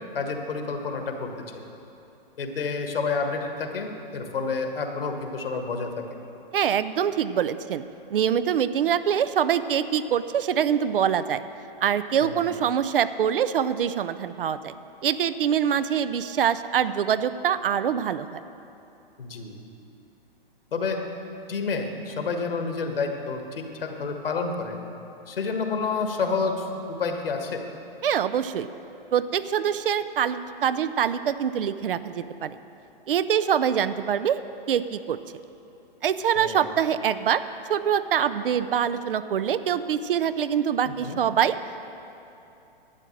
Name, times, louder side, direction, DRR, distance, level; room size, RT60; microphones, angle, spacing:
voice 1, 0.1-1.6 2.4-6.0 12.2-12.5 19.2-19.6 20.7-21.0 21.5-24.8 25.3-27.6 36.3-36.7 41.0-41.2, left 4 dB, 70° left, 5 dB, 1.5 m, -29 dB
voice 2, 6.5-7.8 8.1-11.4 11.8-14.7 15.0-18.4 28.0-28.7 29.1-32.6 33.1-34.4 34.7-35.2 36.0-37.4 37.7-41.6, right 8 dB, 65° right, 13 dB, 0.6 m, -24 dB
12.0 x 8.7 x 6.4 m, 2.8 s
figure-of-eight pair, 120°, 29 cm